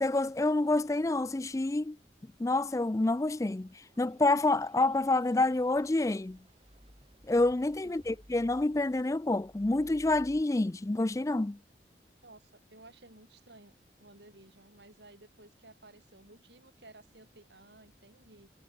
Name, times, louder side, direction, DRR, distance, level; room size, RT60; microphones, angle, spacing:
voice 1, 0.0-2.0 2.4-6.4 7.3-11.6, left 2 dB, 20° left, 0.4 m, -28 dB
sound 1, 3.6-10.4, equal, 35° right, 7.5 m, -58 dB
voice 2, 7.8-8.2 12.2-18.5, right 2 dB, 75° right, 5.2 m, -56 dB
head